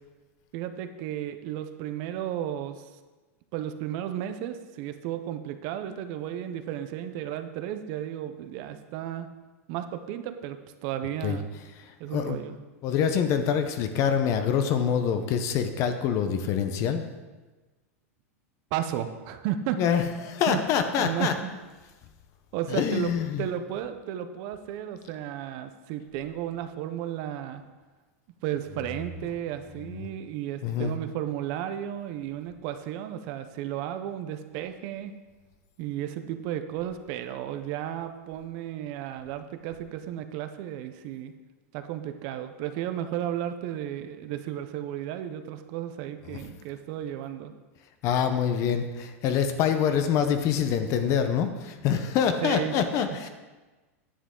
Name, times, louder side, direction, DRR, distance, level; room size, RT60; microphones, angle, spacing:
voice 1, 0.5-3.0 3.5-9.3 9.7-11.5 12.0-12.6 18.7-19.8 20.5-20.6 21.0-21.5 22.5-23.1 23.4-27.6 28.4-35.1 35.8-41.3 41.7-47.5 52.4-52.7, right 11 dB, 50° right, 9 dB, 0.6 m, -33 dB
voice 2, 12.8-17.0 19.8-21.3 22.7-23.4 29.9-30.1 30.6-30.9 46.3-46.4 48.0-53.3, left 8 dB, 40° left, 8 dB, 0.8 m, -25 dB
10.0 x 7.3 x 3.8 m, 1.2 s
supercardioid pair, 140°, 8 cm